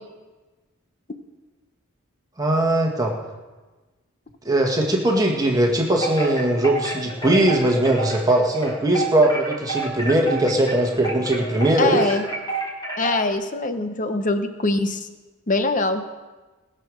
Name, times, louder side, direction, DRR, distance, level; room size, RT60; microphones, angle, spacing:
voice 1, 2.4-3.1 4.5-12.1, right 1 dB, 15° right, 0 dB, 1.6 m, -20 dB
Wind chime, 6.0-13.3, right 3 dB, 20° left, 2.5 m, -30 dB
voice 2, 11.8-12.2 13.0-15.1 15.5-16.0, left 2 dB, 35° left, 8 dB, 0.9 m, -23 dB
20.0 x 6.9 x 6.3 m, 1.2 s
head